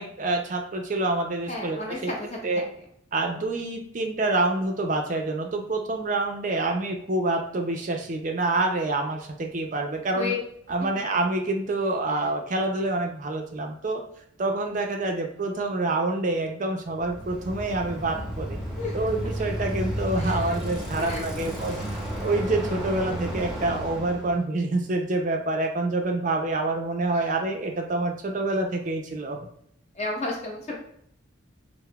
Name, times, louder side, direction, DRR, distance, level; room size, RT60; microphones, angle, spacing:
voice 1, 0.0-2.1 2.4-2.7 3.1-10.3 10.7-14.0 14.4-18.6 18.9-21.8 22.2-29.4, right 2 dB, 40° right, 3 dB, 0.4 m, -27 dB
voice 2, 1.5-2.4 10.1-10.4 10.8-10.9 18.8-19.1 20.2-20.6 20.9-21.9 29.9-30.8, left 3 dB, 35° left, -1 dB, 0.8 m, -33 dB
Bicycle, 16.9-24.4, equal, ahead, 0.9 m, -32 dB
5.6 x 2.0 x 2.2 m, 0.69 s
head